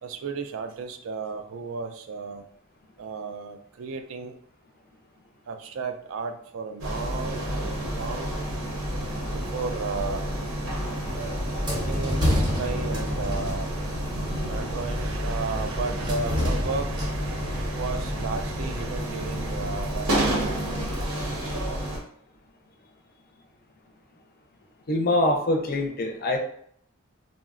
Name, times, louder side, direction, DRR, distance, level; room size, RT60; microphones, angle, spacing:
voice 1, 0.0-2.5 3.0-4.3 5.5-8.3 9.3-10.3 11.9-13.7 14.4-20.6, right 4 dB, 65° right, 0.3 m, -34 dB
sound 1, 6.8-22.0, right 1 dB, 90° right, 0.8 m, -30 dB
sound 2, 11.1-21.1, left 1 dB, 20° right, 0.6 m, -31 dB
voice 2, 24.9-26.4, left 1 dB, 45° left, 0.5 m, -24 dB
3.8 x 2.0 x 2.4 m
head